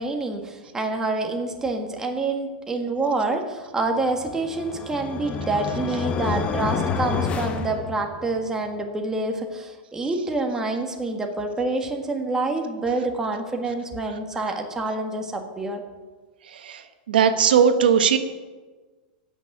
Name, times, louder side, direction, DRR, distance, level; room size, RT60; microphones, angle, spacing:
voice 1, 0.0-15.8, right 2 dB, 10° right, 3 dB, 1.7 m, -27 dB
sound 1, 4.1-8.5, left 5 dB, 25° left, 0.9 m, -29 dB
voice 2, 17.1-18.2, right 7 dB, 90° right, 8 dB, 1.2 m, -18 dB
15.0 x 6.3 x 8.9 m, 1.3 s
supercardioid pair, 140°, 5 cm